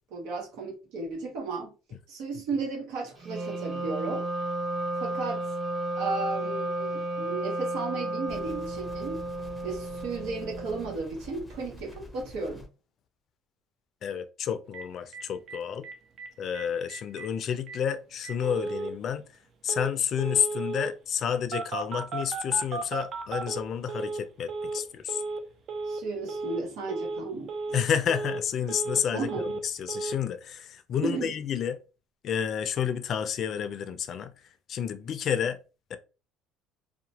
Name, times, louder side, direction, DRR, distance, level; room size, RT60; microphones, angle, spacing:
voice 1, 0.1-1.7 2.1-4.3 5.0-5.4 6.0-9.2 9.6-12.7 25.9-27.5 29.1-29.5 31.0-31.3, right 3 dB, 80° right, 1.0 m, -34 dB
Wind instrument woodwind instrument, 3.2-11.0, right 2 dB, 30° right, 0.8 m, -33 dB
sound 1, 8.3-12.7, left 1 dB, 5° left, 0.6 m, -47 dB
voice 2, 14.0-15.9 16.4-19.2 19.6-25.2 27.7-31.8 32.2-34.3 34.7-35.6 35.9-36.0, left 8 dB, 50° left, 0.4 m, -30 dB
Telephone, 14.7-14.8 15.1-15.2 15.5-15.6 15.8-16.3 16.5-16.6 16.9-17.3 17.7-17.8 18.2-18.9 19.7-19.9 20.2-20.9 21.5-24.2 24.5-24.8 25.1-25.4 25.7-26.0 26.3-26.6 26.9-27.2 27.5-27.8 28.1-29.0 29.3-29.6 29.9-30.1, right 3 dB, 50° right, 0.5 m, -34 dB
2.8 x 2.1 x 2.8 m
cardioid pair, 115°, 0 cm